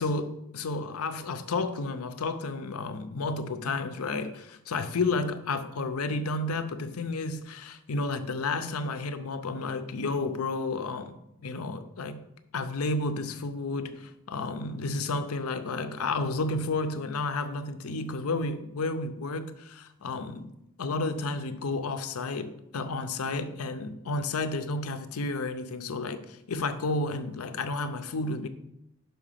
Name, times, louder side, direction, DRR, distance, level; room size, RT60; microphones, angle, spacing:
voice 1, 0.0-11.2 11.4-12.2 12.5-20.5 20.8-28.5, left 3 dB, 85° left, 0.6 m, -31 dB
5.6 x 5.0 x 5.7 m
head